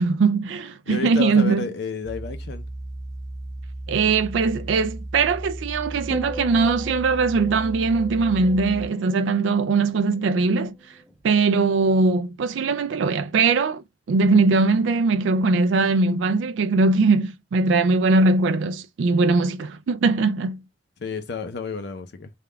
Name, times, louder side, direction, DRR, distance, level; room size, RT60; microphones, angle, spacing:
voice 1, 0.0-1.7 3.9-10.8 11.2-20.6, right 3 dB, 80° right, 0.4 m, -21 dB
voice 2, 0.9-2.7 21.0-22.3, left 4 dB, 60° left, 0.5 m, -31 dB
sound 1, 2.0-8.9, right 1 dB, 20° right, 0.9 m, -35 dB
sound 2, 6.1-10.5 10.8-11.2, right 1 dB, 5° right, 0.5 m, -39 dB
3.5 x 2.3 x 3.3 m
head